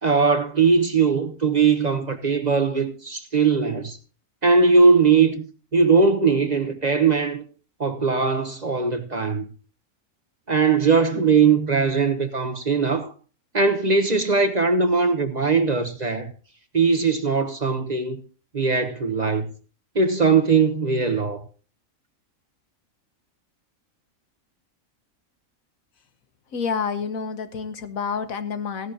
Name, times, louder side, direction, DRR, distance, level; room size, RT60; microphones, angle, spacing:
voice 1, 0.0-4.0 4.4-5.4 5.7-7.4 7.8-9.5 10.5-13.1 13.5-16.3 16.7-18.2 18.5-19.5 19.9-21.4, right 4 dB, 35° right, 1.0 m, -20 dB
voice 2, 26.5-28.9, left 6 dB, 75° left, 1.5 m, -28 dB
16.0 x 11.5 x 2.8 m
omnidirectional pair, 1.4 m